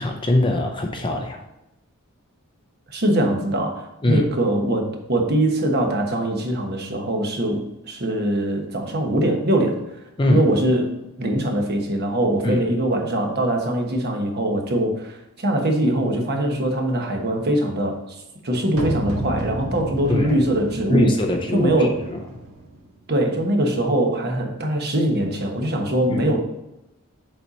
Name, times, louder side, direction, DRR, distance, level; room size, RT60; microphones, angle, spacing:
voice 1, 0.0-1.4 4.0-4.3 10.2-10.5 12.4-12.6 20.1-20.4 20.9-22.2 26.1-26.3, left 1 dB, 20° left, 3 dB, 0.5 m, -22 dB
voice 2, 2.9-7.6 7.9-9.8 10.3-18.0 18.4-21.1 21.5-22.0 23.1-26.4, right 1 dB, 50° right, 2 dB, 1.2 m, -22 dB
sound 1, 18.7-22.8, equal, 85° right, 1.3 m, -31 dB
7.5 x 4.1 x 4.2 m, 0.91 s
head